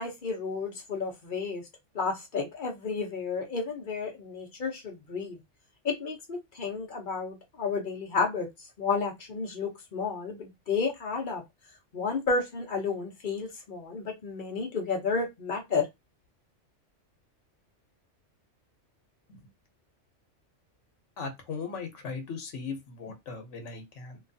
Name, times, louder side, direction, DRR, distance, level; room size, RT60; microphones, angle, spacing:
voice 1, 0.0-1.6 1.9-5.4 5.8-8.5 8.8-11.4 11.9-15.9, left 4 dB, 45° left, 0.8 m, -31 dB
voice 2, 21.2-24.2, left 5 dB, 75° left, 1.1 m, -38 dB
3.1 x 2.3 x 2.6 m
omnidirectional pair, 1.2 m